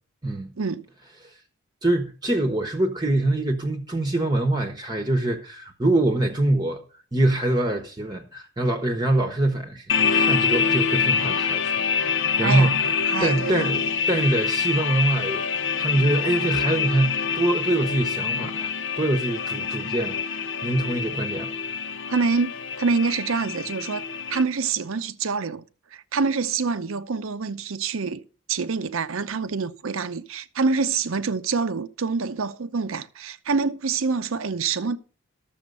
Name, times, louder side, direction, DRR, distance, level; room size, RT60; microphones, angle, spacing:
voice 1, 1.8-6.8 7.1-11.6 11.9-21.9, right 1 dB, 20° right, 1.0 m, -24 dB
sound 1, 9.9-24.4, left 6 dB, 60° left, 0.6 m, -26 dB
voice 2, 12.4-12.8 13.1-13.7 22.1-24.0 24.3-25.6 25.9-28.2 28.5-35.0, right 4 dB, 75° right, 0.7 m, -26 dB
12.5 x 7.2 x 5.3 m
head